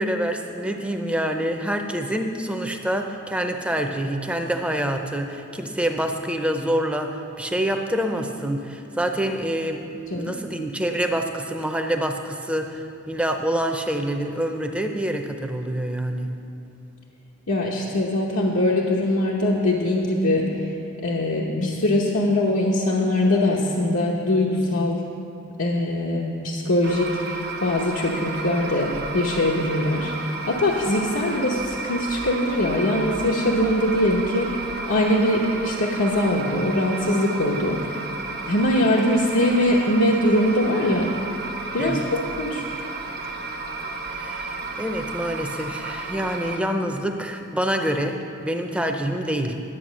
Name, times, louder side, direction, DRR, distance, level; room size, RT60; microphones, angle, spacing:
voice 1, 0.0-16.3 41.8-42.1 44.1-48.2 48.4-49.5, right 1 dB, 5° right, 4 dB, 0.6 m, -26 dB
voice 2, 17.5-20.5 21.0-25.0 25.6-37.8 38.4-41.1 41.7-42.6, left 1 dB, 80° left, -3 dB, 1.0 m, -22 dB
sound 1, 26.8-46.6, right 3 dB, 50° right, 0.8 m, -33 dB
11.0 x 8.3 x 6.2 m, 2.7 s
head